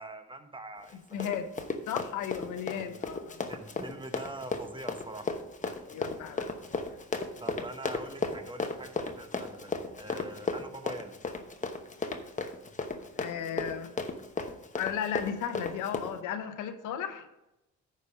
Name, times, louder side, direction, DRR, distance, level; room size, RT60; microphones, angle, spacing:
voice 1, 0.0-1.3 2.7-3.2 3.5-5.3 7.4-11.2, right 1 dB, 15° right, 7 dB, 1.0 m, -44 dB
Run, 0.8-16.1, left 3 dB, 25° left, 1.0 m, -35 dB
voice 2, 1.1-1.4 1.9-3.4 5.9-6.5 13.2-13.9 14.8-17.3, left 9 dB, 85° left, 8 dB, 1.0 m, -35 dB
9.3 x 5.3 x 5.3 m, 0.92 s
cardioid pair, 90°, 30 cm